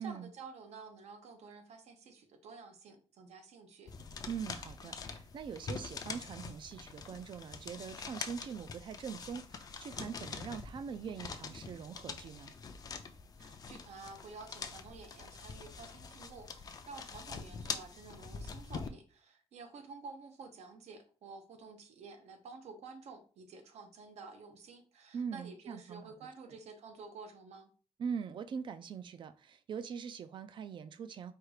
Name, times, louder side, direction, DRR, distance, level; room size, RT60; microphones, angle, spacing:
voice 1, 0.0-3.9 13.4-27.7, right 4 dB, 80° right, 1.0 m, -51 dB
sound 1, 3.9-18.9, left 5 dB, 35° left, 0.4 m, -45 dB
voice 2, 4.3-12.5 25.1-26.1 28.0-31.3, right 6 dB, 45° right, 0.4 m, -42 dB
4.5 x 2.4 x 4.8 m
wide cardioid pair, 170°, 11 cm